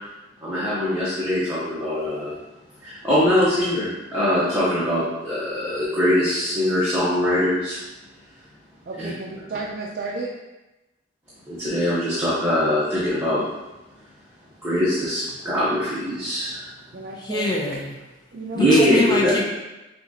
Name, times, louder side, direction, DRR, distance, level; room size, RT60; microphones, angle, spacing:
voice 1, 0.4-2.3 2.8-7.8 9.0-9.1 11.5-13.4 14.6-16.6 18.5-19.4, left 1 dB, 15° right, -11 dB, 1.0 m, -22 dB
voice 2, 8.9-10.3 16.9-17.5 18.3-18.9, right 3 dB, 50° right, -2 dB, 0.5 m, -32 dB
voice 3, 17.2-17.9 18.6-19.4, left 2 dB, 20° left, -1 dB, 0.7 m, -25 dB
6.7 x 2.4 x 2.8 m, 1.0 s
head